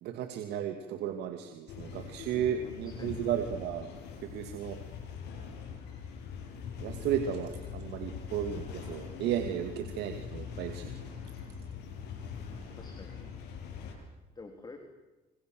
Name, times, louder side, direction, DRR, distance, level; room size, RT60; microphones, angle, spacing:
voice 1, 0.0-3.9 4.2-4.8 6.8-10.9, right 9 dB, 80° right, 6 dB, 2.5 m, -34 dB
sound 1, 1.7-13.9, left 6 dB, 85° left, 8.0 m, -42 dB
voice 2, 2.3-3.3 12.4-13.3 14.4-14.8, left 3 dB, 25° left, 5 dB, 3.8 m, -50 dB
27.0 x 26.0 x 7.9 m, 1.1 s
cardioid pair, 110°, 17 cm